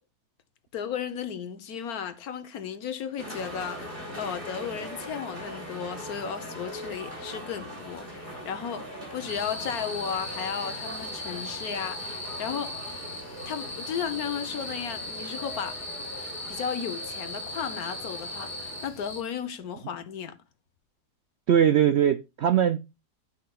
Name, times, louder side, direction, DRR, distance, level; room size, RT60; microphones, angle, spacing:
voice 1, 0.7-12.8 13.5-15.8 16.5-18.5 18.8-20.4, left 7 dB, 70° left, 1.4 m, -34 dB
sound 1, 3.2-18.9, equal, 30° right, 3.5 m, -41 dB
sound 2, 9.3-19.2, left 1 dB, 45° left, 3.0 m, -38 dB
voice 2, 21.5-22.8, right 9 dB, 70° right, 0.6 m, -21 dB
12.5 x 5.7 x 2.3 m
omnidirectional pair, 1.7 m